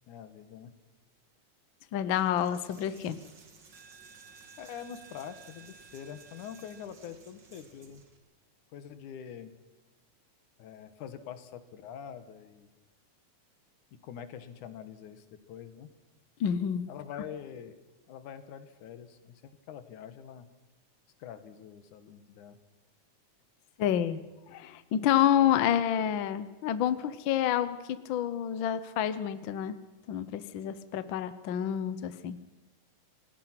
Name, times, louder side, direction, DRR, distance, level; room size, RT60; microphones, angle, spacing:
voice 1, 0.1-0.7 4.6-8.0 8.7-9.6 10.6-12.7 14.0-15.9 16.9-17.8 18.1-20.5 21.2-22.6, left 8 dB, 85° left, 11 dB, 2.8 m, -45 dB
voice 2, 1.9-3.2 16.4-16.9 23.8-24.2 24.5-27.8 28.1-29.7 30.1-32.4, left 10 dB, 65° left, 13 dB, 1.2 m, -28 dB
Coin (dropping), 2.2-8.2, right 5 dB, 40° right, 2.4 m, -54 dB
28.5 x 18.5 x 6.0 m, 1.1 s
omnidirectional pair, 3.4 m